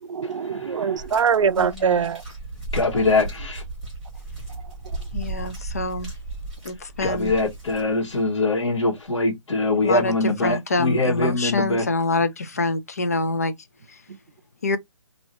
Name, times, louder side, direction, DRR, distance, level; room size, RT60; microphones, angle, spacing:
voice 1, 0.0-2.2 2.9-3.0, right 6 dB, 70° right, 0.4 m, -23 dB
sound 1, 1.0-8.2 9.0-9.1, right 2 dB, ahead, 1.0 m, -35 dB
voice 2, 1.6-2.1 5.1-6.1 6.6-7.3 9.8-13.5 13.9-14.0 14.6-14.8, left 2 dB, 30° left, 0.4 m, -26 dB
voice 3, 2.7-3.6 7.0-11.8, left 2 dB, 65° left, 1.4 m, -23 dB
2.6 x 2.6 x 2.9 m
hypercardioid pair, 165°, 17 cm